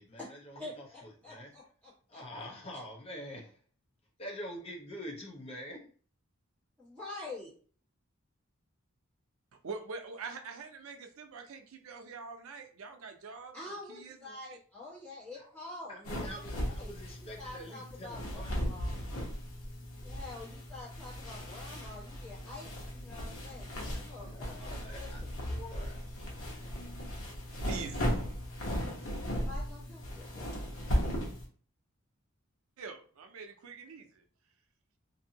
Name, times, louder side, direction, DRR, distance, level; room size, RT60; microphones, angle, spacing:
voice 1, 0.0-1.6 2.1-3.6 4.2-5.9 13.3-13.5 15.3-15.5 15.9-18.6 24.3-26.0, equal, 30° left, 0.6 m, -46 dB
voice 2, 1.2-2.2 6.8-7.5 13.5-16.9 17.4-18.4 18.7-18.9 20.0-25.3 29.4-30.8, left 2 dB, 5° left, 1.2 m, -47 dB
voice 3, 9.6-14.6 27.6-28.5 32.8-34.2, right 4 dB, 90° right, 0.5 m, -45 dB
sound 1, 16.0-31.5, equal, 85° left, 1.0 m, -37 dB
2.7 x 2.6 x 2.7 m
head